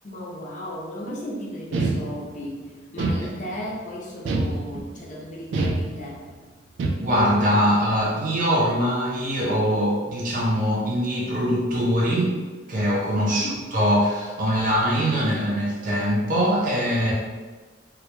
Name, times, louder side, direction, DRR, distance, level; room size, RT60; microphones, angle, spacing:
voice 1, 0.0-2.6 2.9-6.2 13.3-13.6, left 1 dB, 45° left, -5 dB, 0.5 m, -35 dB
sound 1, 1.7-2.5 3.0-3.7 4.3-5.0 5.5-6.3 6.8-7.4, right 2 dB, 90° right, 0.3 m, -27 dB
voice 2, 7.0-12.4 12.7-17.1, equal, 50° right, -4 dB, 0.6 m, -22 dB
2.1 x 2.1 x 2.9 m, 1.3 s
head